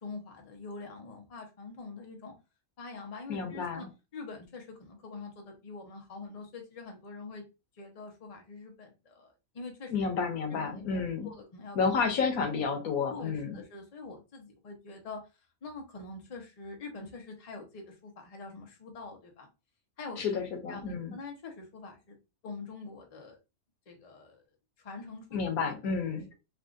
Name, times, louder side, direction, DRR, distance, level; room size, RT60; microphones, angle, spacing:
voice 1, 0.0-2.3 2.8-3.9 4.1-7.4 7.7-9.9 10.5-11.8 12.1-12.7 13.1-15.2 15.6-19.5 20.0-22.2 22.4-23.4 23.9-24.4 24.8-25.7 26.1-26.3, left 3 dB, 35° left, 3 dB, 0.7 m, -45 dB
voice 2, 3.3-3.9 9.9-11.3 11.7-13.6 20.2-21.1 25.3-26.3, left 5 dB, 90° left, 4 dB, 1.3 m, -31 dB
3.6 x 2.4 x 2.4 m, 0.28 s
omnidirectional pair, 1.5 m